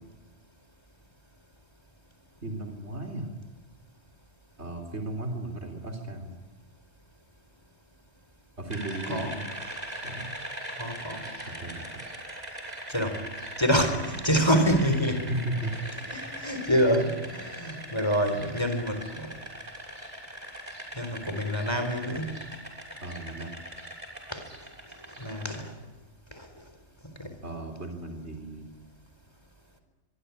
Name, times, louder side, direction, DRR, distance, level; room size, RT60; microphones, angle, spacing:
voice 1, 2.4-3.3 4.6-6.3 8.6-9.4 10.0-10.3 11.5-12.0 15.3-15.7 23.0-23.6 27.4-28.7, right 1 dB, 65° right, 3 dB, 3.8 m, -35 dB
sound 1, 8.7-25.6, right 1 dB, 35° right, 6.9 m, -41 dB
voice 2, 10.8-11.3 12.9-13.2 13.6-15.3 16.1-19.3 21.0-22.5 24.3-24.5 25.2-25.7 26.3-26.5 27.0-27.3, equal, 20° left, 7 dB, 4.2 m, -27 dB
25.5 x 23.0 x 9.9 m, 1.2 s
omnidirectional pair, 1.2 m